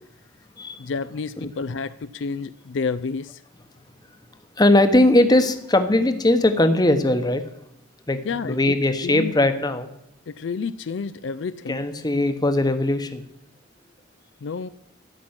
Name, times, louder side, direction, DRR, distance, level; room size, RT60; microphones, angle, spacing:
voice 1, 0.8-3.4 8.3-8.7 9.0-9.3 10.3-11.8 14.4-14.7, left 5 dB, 65° left, 14 dB, 0.4 m, -30 dB
voice 2, 4.6-7.4 8.1-9.9 11.7-13.2, left 1 dB, 20° left, 8 dB, 1.0 m, -19 dB
13.0 x 6.0 x 9.6 m, 0.84 s
head